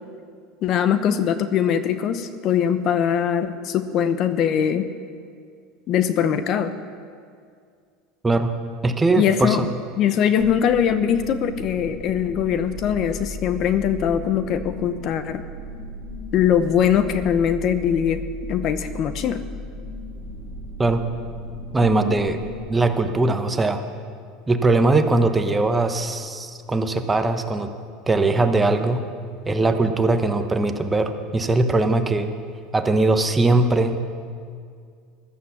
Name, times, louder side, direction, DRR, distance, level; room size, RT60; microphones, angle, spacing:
voice 1, 0.6-4.9 5.9-6.7 9.1-9.7 10.0-15.4 16.3-19.4, left 8 dB, 45° left, 11 dB, 0.8 m, -21 dB
voice 2, 8.2-8.5 8.8-9.7 20.8-21.0 21.7-22.4 22.7-23.8 24.5-27.7 28.1-29.0 29.5-32.3 32.7-34.0, right 2 dB, 15° right, 7 dB, 1.0 m, -20 dB
sound 1, 10.4-22.6, left 1 dB, 40° right, 4.2 m, -36 dB
14.5 x 12.5 x 7.1 m, 2.2 s
supercardioid pair, 135°, 0 cm